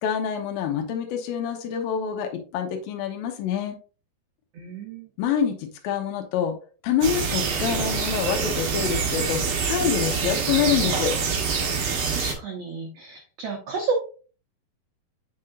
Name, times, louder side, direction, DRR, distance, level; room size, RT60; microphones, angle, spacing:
voice 1, 0.0-3.8 5.2-6.6 6.8-11.1, left 8 dB, 80° left, 4 dB, 2.7 m, -26 dB
voice 2, 4.5-5.1 12.1-14.0, right 4 dB, 90° right, 1 dB, 1.4 m, -31 dB
sound 1, 7.0-12.3, right 5 dB, 70° right, 1.3 m, -25 dB
7.5 x 5.8 x 2.5 m, 0.37 s
omnidirectional pair, 4.3 m